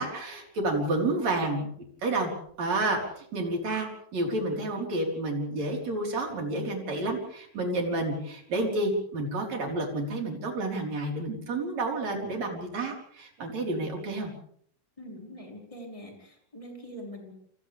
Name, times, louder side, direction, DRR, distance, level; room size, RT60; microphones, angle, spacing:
voice 1, 0.0-1.7 2.0-2.3 2.6-14.3, right 2 dB, 35° right, 1 dB, 5.2 m, -30 dB
voice 2, 15.0-17.3, equal, 5° left, 0 dB, 5.4 m, -43 dB
29.5 x 28.0 x 3.5 m, 0.65 s
omnidirectional pair, 5.5 m